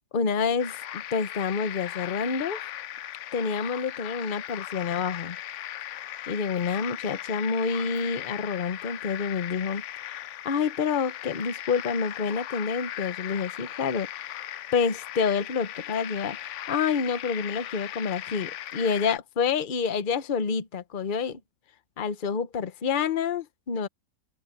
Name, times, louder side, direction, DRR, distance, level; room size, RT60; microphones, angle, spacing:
voice 1, 0.1-2.6 3.3-5.4 6.3-9.8 10.4-14.4 14.7-21.4 22.0-23.9, left 5 dB, 35° left, 0.9 m, -28 dB
sound 1, 0.6-19.2, left 12 dB, 70° left, 0.7 m, -38 dB
omnidirectional pair, 1.8 m